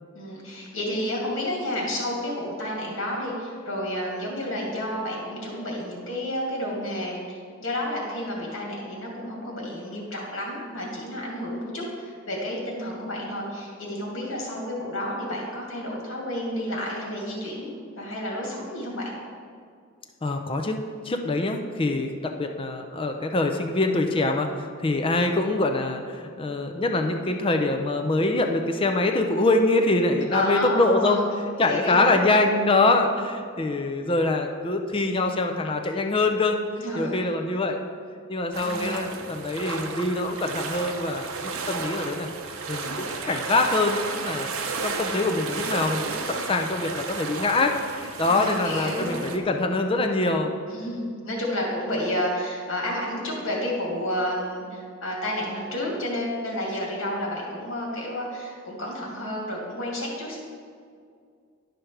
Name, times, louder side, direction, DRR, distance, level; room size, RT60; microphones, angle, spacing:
voice 1, 0.1-19.1 30.3-31.2 31.6-32.2 36.8-37.2 38.6-39.2 48.3-49.2 50.7-60.4, left 1 dB, 65° left, -3 dB, 2.4 m, -31 dB
voice 2, 20.2-20.8 21.0-31.2 31.6-36.6 36.9-37.8 38.3-42.3 42.7-44.5 44.8-50.5, left 2 dB, 25° left, 4 dB, 0.5 m, -24 dB
sound 1, 38.5-49.4, right 4 dB, 75° right, 0.7 m, -33 dB
11.0 x 5.1 x 4.5 m, 2.2 s
head